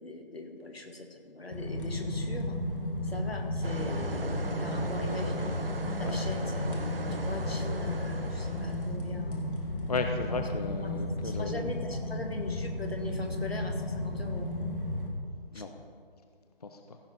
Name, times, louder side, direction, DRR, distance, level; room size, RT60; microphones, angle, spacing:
voice 1, 0.0-2.6 3.0-5.5 6.0-9.5 10.8-14.6 15.5-15.6, left 2 dB, 85° left, 4 dB, 1.8 m, -41 dB
sound 1, 1.5-15.1, left 1 dB, 60° left, 2.1 m, -33 dB
sound 2, 3.6-9.0, right 3 dB, 70° right, 1.1 m, -39 dB
voice 2, 9.9-11.6 11.9-12.0 15.5-15.7 16.6-17.0, left 3 dB, 40° left, 5 dB, 0.6 m, -35 dB
15.0 x 6.1 x 5.1 m, 2.1 s
figure-of-eight pair, 155°, 30 cm